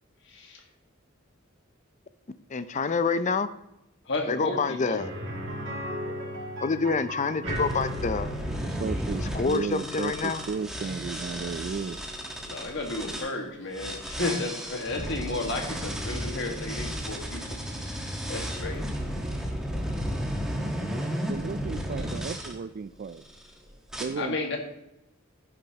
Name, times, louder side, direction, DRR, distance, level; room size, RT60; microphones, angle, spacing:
voice 1, 0.2-0.6 4.0-5.0 12.5-19.0 24.2-24.6, left 2 dB, 60° left, 2 dB, 1.7 m, -33 dB
voice 2, 2.5-3.5 4.3-5.1 6.6-8.3 9.3-10.4, left 4 dB, 35° left, 13 dB, 0.5 m, -27 dB
sound 1, 5.0-14.8 15.1-15.2 17.6-17.7, equal, 65° right, 2.4 m, -39 dB
sound 2, 7.5-13.3 13.7-22.5 23.2-23.5 23.9-24.0, equal, 5° right, 1.3 m, -33 dB
voice 3, 8.6-12.0 21.2-23.2 24.0-24.4, right 5 dB, 45° right, 12 dB, 0.3 m, -34 dB
11.0 x 10.5 x 2.9 m, 0.87 s
head